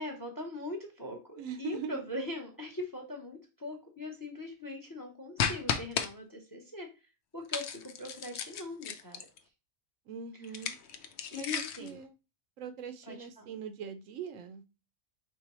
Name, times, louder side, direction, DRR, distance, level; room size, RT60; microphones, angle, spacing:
voice 1, 0.0-6.9 7.3-7.6 8.0-9.2 11.3-12.0 13.0-13.5, left 2 dB, 20° left, 0.6 m, -41 dB
voice 2, 1.4-2.0 10.1-10.7 11.3-12.1 12.6-14.6, right 7 dB, 75° right, 0.9 m, -41 dB
sound 1, 5.4-6.1 7.5-9.4 10.4-11.9, left 7 dB, 65° left, 0.7 m, -34 dB
4.6 x 3.5 x 2.9 m
omnidirectional pair, 1.4 m